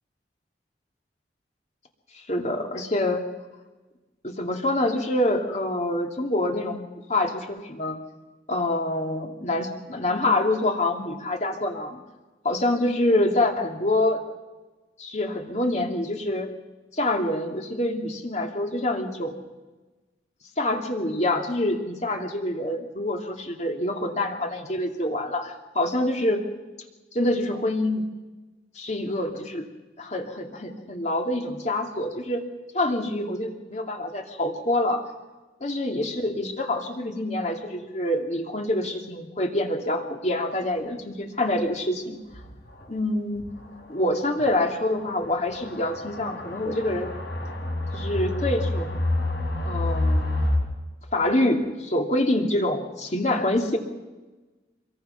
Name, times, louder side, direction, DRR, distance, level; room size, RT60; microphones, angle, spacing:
voice 1, 2.1-3.2 4.2-6.8 7.1-8.0 8.5-12.0 12.4-14.2 15.0-16.5 16.9-19.4 20.6-26.4 27.1-28.0 28.8-29.7 30.0-32.4 32.7-35.0 35.6-42.2 42.9-43.4 43.9-47.1 47.9-48.9 49.6-50.3 51.1-53.8, left 1 dB, 40° left, 3 dB, 2.6 m, -26 dB
sound 1, 42.3-42.4 42.8-42.9 43.4-43.5 44.4-50.6, left 1 dB, 65° left, 4.9 m, -28 dB
27.0 x 22.0 x 5.8 m, 1.2 s
head